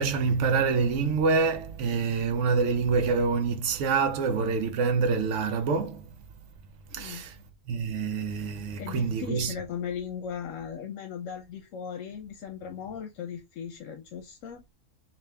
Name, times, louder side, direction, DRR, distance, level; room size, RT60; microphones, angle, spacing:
voice 1, 0.0-6.1 6.9-7.3 7.7-9.5, right 5 dB, 70° right, 0.9 m, -26 dB
voice 2, 6.9-7.3 8.8-14.6, left 7 dB, 85° left, 1.0 m, -37 dB
3.4 x 2.6 x 3.4 m
omnidirectional pair, 1.3 m